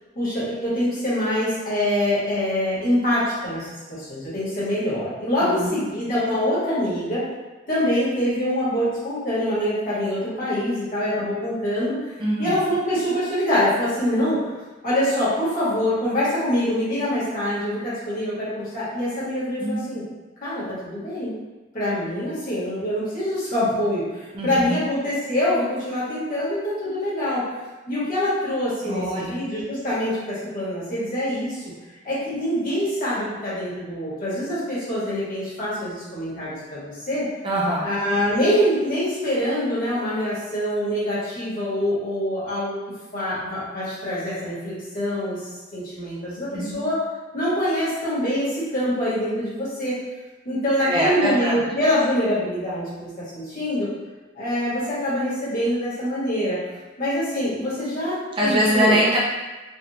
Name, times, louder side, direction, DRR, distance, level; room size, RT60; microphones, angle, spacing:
voice 1, 0.1-7.2 7.7-12.1 12.4-14.4 14.8-20.0 20.4-21.3 21.7-27.4 27.9-31.6 32.0-37.2 37.8-42.8 43.1-47.0 47.3-50.0 50.4-53.9 54.3-56.6 57.0-59.0, left 1 dB, 45° left, -10 dB, 1.5 m, -25 dB
voice 2, 5.4-5.8 12.2-12.6 19.6-19.8 24.3-24.8 28.9-29.4 37.4-37.9 46.5-46.8 50.8-51.6 58.4-59.2, equal, 25° right, -5 dB, 0.5 m, -23 dB
3.3 x 2.5 x 2.9 m, 1.2 s
head